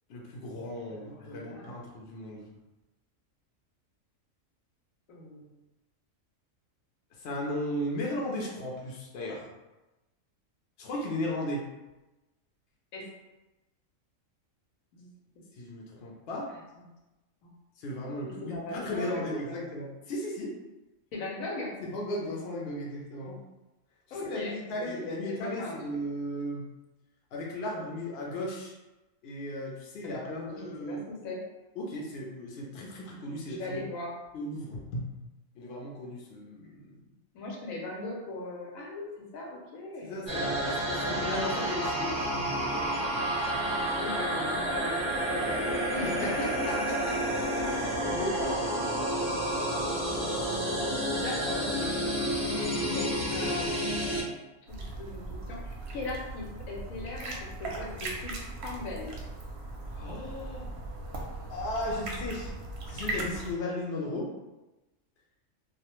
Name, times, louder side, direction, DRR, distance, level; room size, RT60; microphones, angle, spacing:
voice 1, 0.1-2.5 7.2-9.5 10.8-11.6 15.6-16.5 17.8-20.6 21.8-23.4 24.2-26.7 27.3-28.7 29.2-31.0 31.8-33.8 34.3-35.0 35.5-37.0 40.0-44.4 46.0-46.3 46.7-47.4 47.7-48.7 49.6-49.9 59.9-60.7 61.5-62.5 62.9-64.3, left 1 dB, 60° left, -2 dB, 0.7 m, -36 dB
voice 2, 0.9-1.7 5.1-5.5 12.9-13.1 14.9-15.1 16.7-16.8 17.4-17.5 18.2-19.7 21.1-21.7 24.1-25.8 30.0-31.4 33.4-34.2 37.3-40.2 40.5-40.9 44.0-46.7 51.1-52.0 52.9-54.1 54.7-57.3 57.6-59.2, left 2 dB, 90° left, -2 dB, 1.1 m, -39 dB
sound 1, 40.3-54.2, right 1 dB, 25° left, 0.8 m, -30 dB
sound 2, 54.7-63.5, right 2 dB, 65° right, 0.7 m, -38 dB
2.4 x 2.1 x 2.9 m, 1.0 s
omnidirectional pair, 1.4 m